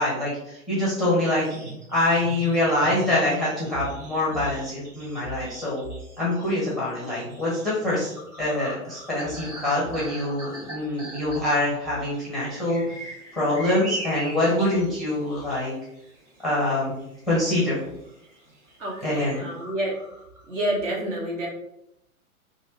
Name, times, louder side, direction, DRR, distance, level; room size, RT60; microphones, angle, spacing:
voice 1, 0.0-1.5 1.9-5.8 6.2-8.1 8.4-12.8 13.3-15.7 16.4-16.9 17.3-17.8 19.0-19.4, left 1 dB, ahead, -7 dB, 0.6 m, -25 dB
sound 1, 1.4-13.1 13.4-13.7 14.1-15.7 16.0-16.7 17.2-17.5 17.7-18.1 18.4-18.5 18.8-18.9 19.1-20.5, right 2 dB, 85° right, 1.3 m, -42 dB
sound 2, 12.5-15.7 16.6-16.7 17.2-17.3 18.2-18.3 18.7-19.4, right 2 dB, 15° right, 0.9 m, -38 dB
voice 2, 18.8-19.9 20.5-21.5, right 1 dB, 60° right, -1 dB, 1.2 m, -28 dB
3.1 x 2.6 x 3.0 m, 0.79 s
figure-of-eight pair, 110°, 43 cm